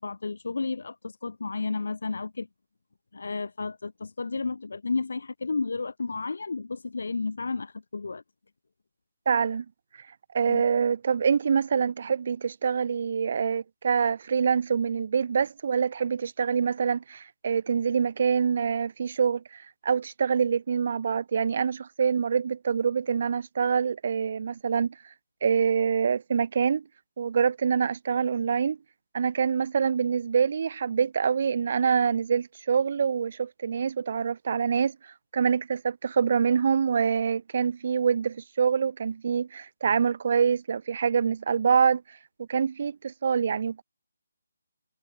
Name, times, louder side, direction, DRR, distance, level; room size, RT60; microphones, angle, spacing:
voice 1, 0.0-2.5 3.1-8.2 10.5-10.6, left 4 dB, 70° left, 0.9 m, -32 dB
voice 2, 9.3-9.6 10.3-24.9 25.4-26.8 27.2-28.8 29.1-35.0 35.3-42.0 42.4-43.8, right 6 dB, 45° right, 1.1 m, -25 dB
hypercardioid pair, 160°, 0 cm